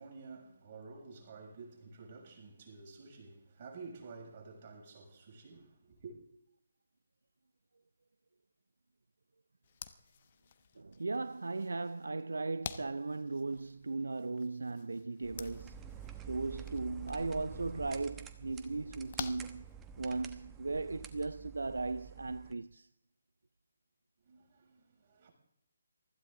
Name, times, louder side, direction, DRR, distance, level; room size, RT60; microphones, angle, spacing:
voice 1, 0.0-6.2 24.2-25.3, right 4 dB, 35° right, 6.7 m, -51 dB
sound 1, 9.6-20.3, left 8 dB, 35° left, 1.1 m, -50 dB
voice 2, 10.8-15.8 16.3-19.7 20.0-22.9, right 3 dB, 65° right, 0.5 m, -37 dB
sound 2, 15.2-22.5, right 7 dB, 10° right, 1.1 m, -49 dB
24.0 x 15.0 x 3.8 m
figure-of-eight pair, 145°, 0 cm